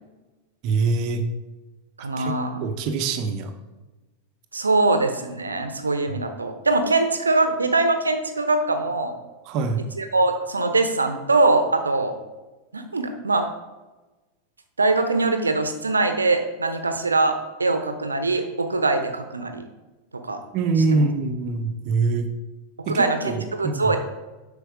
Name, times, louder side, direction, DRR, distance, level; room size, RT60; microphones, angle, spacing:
voice 1, 0.6-1.2 2.2-2.3 2.6-3.5 9.5-9.8 20.5-22.3 22.8-23.9, right 4 dB, 40° right, 7 dB, 1.0 m, -24 dB
voice 2, 2.0-2.7 4.5-9.1 9.9-12.1 12.7-13.5 14.8-19.6 20.1-20.4 20.9-21.0 22.9-24.0, right 3 dB, 75° right, 7 dB, 0.9 m, -22 dB
7.8 x 5.5 x 5.0 m, 1.2 s
figure-of-eight pair, 90°, 0 cm